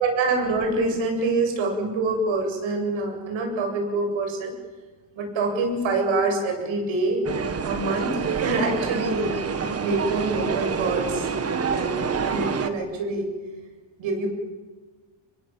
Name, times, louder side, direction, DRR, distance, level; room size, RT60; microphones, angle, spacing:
voice 1, 0.0-4.5 5.2-7.2 7.6-11.3 11.6-13.3 14.0-14.3, right 3 dB, 75° right, 3 dB, 8.0 m, -26 dB
sound 1, 7.3-12.7, right 5 dB, 30° right, 1.5 m, -27 dB
28.5 x 23.0 x 8.8 m, 1.3 s
cardioid pair, 150°, 47 cm